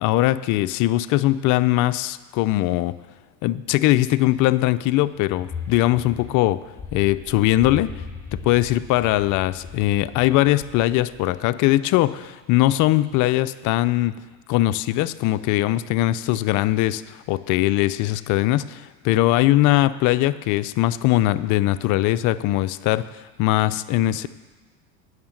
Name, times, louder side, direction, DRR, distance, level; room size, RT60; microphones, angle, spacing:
voice 1, 0.0-3.0 3.4-6.6 6.9-7.9 8.3-14.2 14.5-23.0 23.4-24.3, left 16 dB, 50° left, 14 dB, 0.5 m, -21 dB
sound 1, 5.3-11.5, left 5 dB, 5° left, 2.7 m, -38 dB
8.7 x 6.5 x 7.5 m, 1.2 s
supercardioid pair, 95°, 40 cm